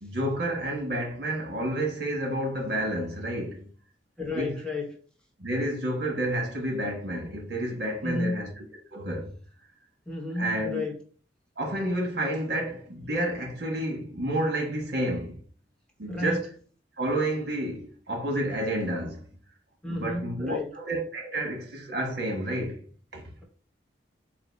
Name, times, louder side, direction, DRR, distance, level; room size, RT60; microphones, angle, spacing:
voice 1, 0.0-3.7 4.3-4.6 5.4-8.5 8.9-9.3 10.3-10.8 11.6-15.4 16.0-16.4 17.0-19.2 19.9-22.8 23.1-23.2, right 1 dB, 60° right, 1.3 m, -30 dB
voice 2, 4.2-5.0 8.0-8.4 10.1-11.0 16.1-16.4 19.8-20.8, left 2 dB, 5° left, 0.8 m, -32 dB
4.1 x 2.6 x 4.0 m
head